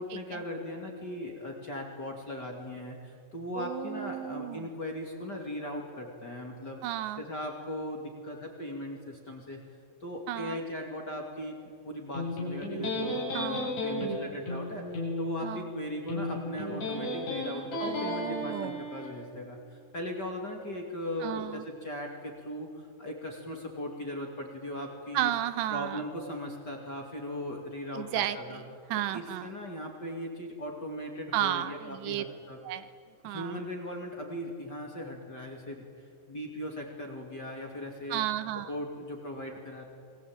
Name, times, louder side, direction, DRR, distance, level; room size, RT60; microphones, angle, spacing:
voice 1, 0.0-6.8 7.2-9.6 10.0-19.6 19.9-25.3 25.7-28.6 29.1-32.6 33.2-38.2 38.7-39.9, left 1 dB, 30° left, 1 dB, 2.5 m, -38 dB
voice 2, 3.6-4.7 6.8-7.2 10.3-10.6 13.3-13.7 15.4-15.7 17.8-18.8 21.2-21.6 25.1-26.0 27.9-28.6 28.9-29.5 31.3-32.2 32.6-32.9 33.2-33.6 38.1-38.7, right 12 dB, 80° right, 12 dB, 3.0 m, -33 dB
Electric guitar, 12.1-19.1, left 1 dB, 70° left, 9.7 m, -34 dB
29.5 x 22.5 x 9.0 m, 2.2 s
omnidirectional pair, 5.2 m